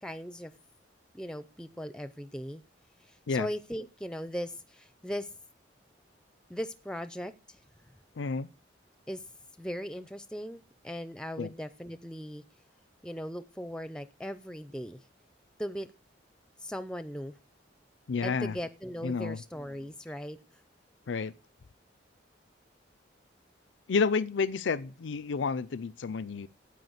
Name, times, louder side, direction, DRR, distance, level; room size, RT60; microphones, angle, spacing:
voice 1, 0.0-0.5 1.1-2.6 3.0-5.3 6.5-7.6 9.1-9.3 9.6-12.4 13.0-15.0 15.6-15.9 16.6-17.3 18.2-20.6, equal, 5° left, 0.5 m, -38 dB
voice 2, 8.2-8.5 11.4-11.5 18.1-18.6 19.0-19.4 21.1-21.3 23.9-26.5, left 5 dB, 80° left, 0.5 m, -30 dB
9.3 x 8.7 x 7.9 m
head